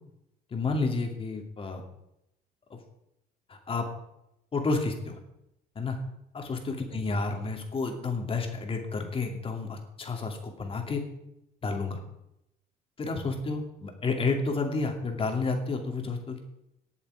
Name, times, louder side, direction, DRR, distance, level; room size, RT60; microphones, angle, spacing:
voice 1, 0.5-1.8 2.7-2.8 3.5-3.9 4.5-5.2 5.7-6.0 6.3-11.0 11.6-12.0 13.0-16.4, left 3 dB, 35° left, 3 dB, 2.6 m, -30 dB
18.5 x 7.2 x 4.9 m, 0.84 s
cardioid pair, 110°, 17 cm